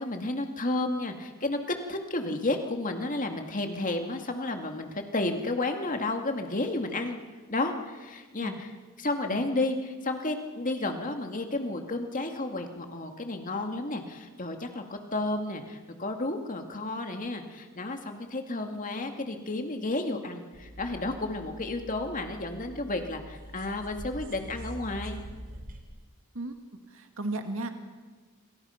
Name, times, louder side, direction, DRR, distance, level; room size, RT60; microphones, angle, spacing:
voice 1, 0.0-7.2 7.5-8.7 9.0-25.2, left 2 dB, 35° left, 4 dB, 2.3 m, -32 dB
sound 1, 20.5-25.8, right 1 dB, 40° right, 4.0 m, -44 dB
voice 2, 26.3-27.7, right 2 dB, 65° right, 5 dB, 2.2 m, -36 dB
27.0 x 27.0 x 5.9 m, 1.4 s
head